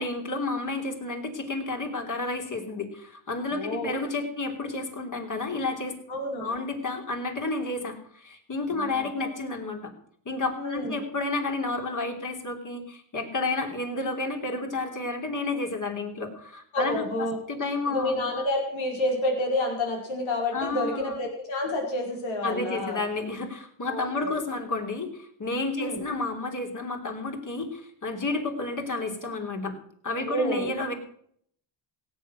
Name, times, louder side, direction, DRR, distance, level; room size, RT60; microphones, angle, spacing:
voice 1, 0.0-6.0 6.4-9.9 10.2-17.0 17.5-18.2 20.5-21.1 22.4-29.8 30.0-30.9, left 3 dB, 40° left, 3 dB, 3.3 m, -31 dB
voice 2, 3.5-4.0 6.1-6.5 8.7-9.3 10.5-11.0 16.7-17.4 17.8-23.0 23.9-24.4 25.8-26.0 30.2-30.7, left 1 dB, 85° left, 0 dB, 5.0 m, -29 dB
17.0 x 8.6 x 6.3 m, 0.64 s
cardioid pair, 80°, 46 cm